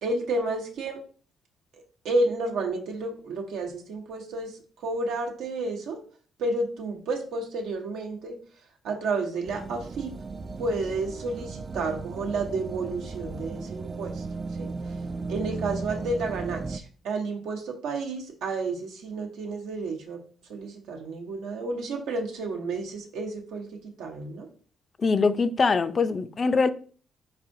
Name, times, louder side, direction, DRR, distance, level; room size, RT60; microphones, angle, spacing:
voice 1, 0.0-1.0 1.7-6.0 6.4-8.4 8.8-10.1 10.6-14.2 14.6-15.0 15.3-24.5, right 2 dB, 85° right, 0.9 m, -31 dB
sound 1, 9.4-16.8, right 4 dB, 35° right, 0.3 m, -36 dB
voice 2, 25.0-26.7, left 4 dB, 40° left, 0.4 m, -23 dB
4.4 x 4.1 x 2.6 m
cardioid pair, 90°, 0 cm